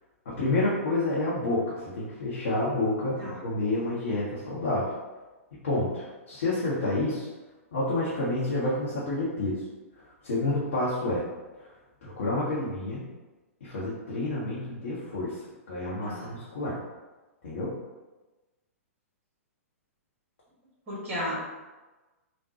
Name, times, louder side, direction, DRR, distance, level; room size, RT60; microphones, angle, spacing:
voice 1, 0.2-4.9 5.5-7.3 7.7-9.6 10.0-11.2 11.6-11.7 12.0-13.1 13.6-16.8 17.4-17.7, left 2 dB, 55° left, -8 dB, 0.9 m, -29 dB
voice 2, 20.9-21.3, left 1 dB, 25° right, -6 dB, 1.4 m, -34 dB
3.6 x 2.2 x 2.8 m, 1.2 s
figure-of-eight pair, 110°, 8 cm